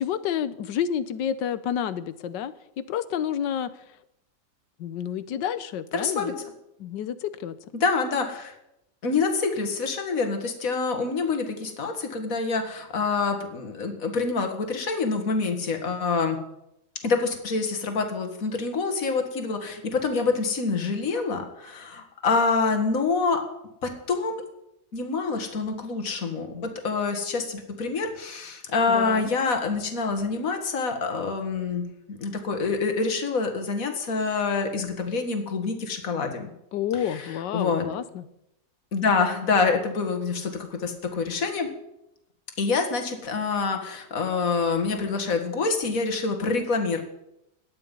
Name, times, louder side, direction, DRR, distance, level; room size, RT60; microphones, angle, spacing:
voice 1, 0.0-2.5 2.9-3.7 4.8-6.3 6.8-7.6 28.9-29.3 36.7-38.2, left 9 dB, 85° left, 14 dB, 1.5 m, -29 dB
voice 2, 5.9-6.3 7.8-8.5 9.0-16.4 17.0-23.4 23.8-24.4 24.9-36.5 37.0-37.8 38.9-41.7 42.6-47.0, left 4 dB, 50° left, 5 dB, 2.3 m, -26 dB
18.5 x 11.5 x 5.5 m, 0.84 s
omnidirectional pair, 1.9 m